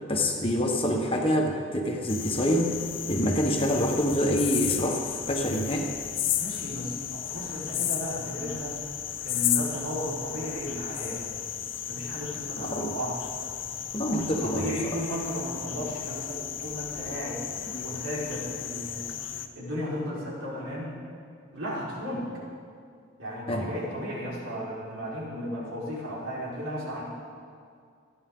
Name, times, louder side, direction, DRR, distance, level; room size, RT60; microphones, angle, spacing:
voice 1, 0.1-2.8 3.0-5.9 12.6-12.9 13.9-15.0 17.7-17.8 23.5-23.6, equal, 25° left, 1 dB, 1.4 m, -26 dB
sound 1, 2.1-19.5, left 10 dB, 65° left, 0.8 m, -34 dB
voice 2, 6.3-8.8 9.2-11.2 11.8-13.2 14.1-17.4 17.8-19.1 19.5-20.9 21.5-22.3 23.2-27.0, equal, 85° right, -6 dB, 4.8 m, -34 dB
28.0 x 10.0 x 3.9 m, 2.2 s
head